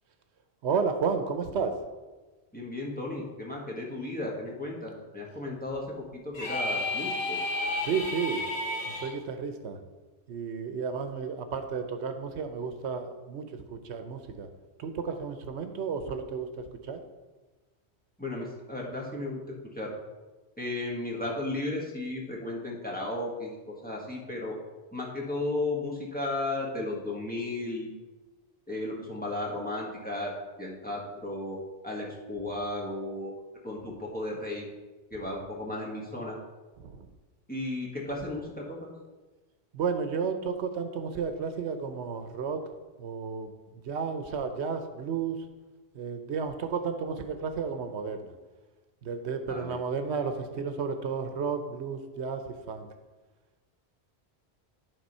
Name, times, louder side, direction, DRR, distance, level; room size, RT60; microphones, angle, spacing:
voice 1, 0.6-1.7 7.8-8.4 8.9-9.8 10.3-14.5 14.8-17.0 36.8-37.1 39.7-42.6 43.0-45.4 45.9-48.3 49.0-52.9, right 5 dB, 80° right, 7 dB, 1.0 m, -32 dB
voice 2, 2.5-7.4 18.2-19.4 19.7-19.9 20.6-23.6 23.8-24.6 24.9-28.0 28.7-30.3 30.6-31.6 31.8-33.3 33.6-34.6 35.1-36.4 37.5-38.9 49.5-49.8, left 2 dB, 10° left, -3 dB, 1.5 m, -34 dB
sound 1, 6.3-9.1, left 2 dB, 75° left, 1.4 m, -31 dB
11.0 x 3.7 x 5.4 m, 1.2 s
omnidirectional pair, 1.1 m